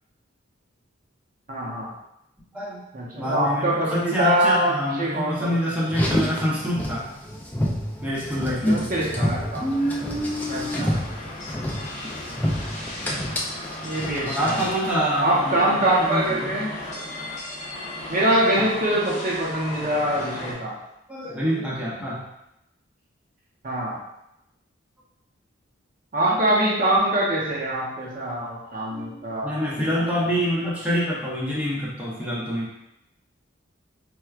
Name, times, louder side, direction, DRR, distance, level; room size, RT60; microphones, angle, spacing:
voice 1, 1.5-1.9 2.9-5.6 8.7-9.7 10.5-10.9 13.8-14.6 15.2-17.3 18.1-20.8 23.6-24.0 26.1-30.0, right 1 dB, 45° right, -4 dB, 0.7 m, -24 dB
voice 2, 2.5-2.8 3.2-7.0 8.0-8.9 14.2-16.5 18.6-18.7 21.1-22.2 28.9-29.2 29.4-32.7, equal, 5° right, -7 dB, 0.7 m, -26 dB
Car, 5.9-14.8, equal, 10° left, 0.3 m, -28 dB
sound 1, 9.1-20.5, left 1 dB, 40° left, 0.7 m, -36 dB
4.4 x 2.2 x 2.4 m, 0.85 s
head